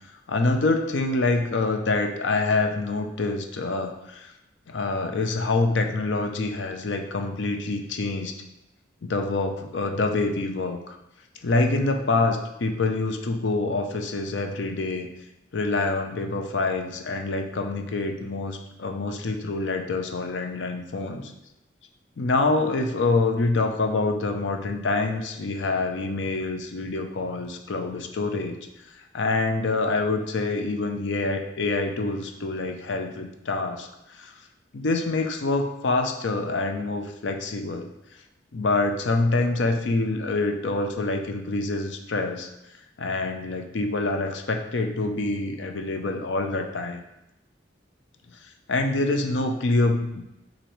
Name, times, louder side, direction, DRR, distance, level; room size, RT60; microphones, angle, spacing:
voice 1, 0.3-4.3 4.7-8.3 9.0-11.0 11.4-15.1 15.5-21.3 22.2-28.6 29.1-34.3 34.7-37.9 38.5-42.5 43.0-47.0 48.7-50.2, left 3 dB, 70° left, 5 dB, 0.6 m, -26 dB
5.9 x 2.7 x 3.1 m, 0.92 s
head